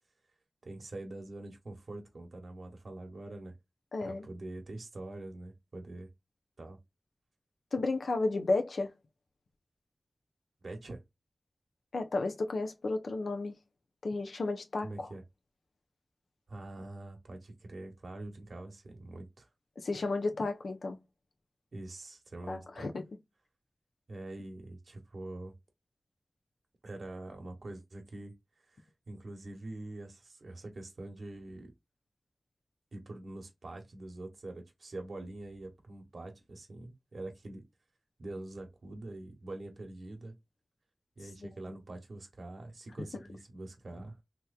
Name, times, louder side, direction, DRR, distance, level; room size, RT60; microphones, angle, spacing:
voice 1, 0.6-3.5 4.0-6.1 6.6-6.8 10.6-11.0 14.8-15.2 16.5-19.5 21.7-22.9 24.1-25.5 26.8-28.3 28.6-31.7 32.9-37.6 38.2-40.3 41.2-44.2, right 2 dB, 70° right, 1.0 m, -44 dB
voice 2, 3.9-4.3 7.7-8.9 11.9-13.6 14.0-15.1 19.8-21.0 22.5-23.0, left 3 dB, 85° left, 0.6 m, -32 dB
3.5 x 2.9 x 2.3 m
wide cardioid pair, 95°, 0 cm